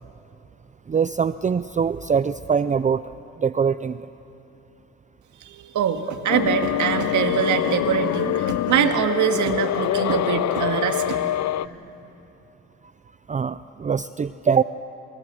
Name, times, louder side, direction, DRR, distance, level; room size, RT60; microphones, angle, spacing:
voice 1, 0.9-4.1 13.3-14.6, right 6 dB, 25° right, 14 dB, 0.5 m, -23 dB
voice 2, 5.4-11.2, right 8 dB, 75° right, 6 dB, 2.0 m, -23 dB
sound 1, 6.3-11.7, left 12 dB, 65° left, 0.6 m, -25 dB
28.0 x 24.5 x 7.6 m, 2.9 s
cardioid pair, 90°, 30 cm